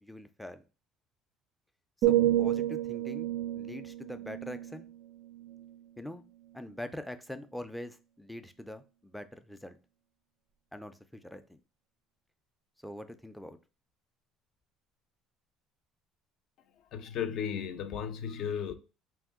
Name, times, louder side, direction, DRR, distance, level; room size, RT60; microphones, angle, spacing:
voice 1, 0.0-0.6 2.0-3.3 3.5-4.9 6.0-6.2 6.5-9.8 10.7-11.6 12.8-13.6, left 1 dB, 5° left, 0.4 m, -43 dB
sound 1, 2.0-5.9 6.4-6.7, right 13 dB, 65° right, 0.4 m, -31 dB
voice 2, 16.9-18.7, left 8 dB, 60° left, 0.5 m, -35 dB
3.7 x 2.6 x 3.6 m
cardioid pair, 130°, 0 cm